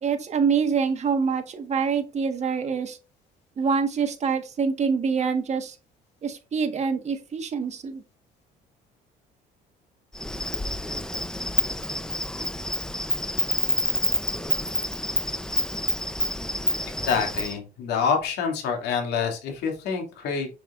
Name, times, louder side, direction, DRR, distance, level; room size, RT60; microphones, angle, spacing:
voice 1, 0.0-3.0 3.6-5.7 6.2-8.0, right 5 dB, 40° right, 6 dB, 1.5 m, -25 dB
Insect, 10.1-17.5, left 1 dB, 5° left, 0.7 m, -28 dB
voice 2, 17.0-20.5, left 6 dB, 80° left, 3 dB, 2.6 m, -26 dB
7.1 x 6.3 x 2.5 m, 0.31 s
cardioid pair, 110°, 17 cm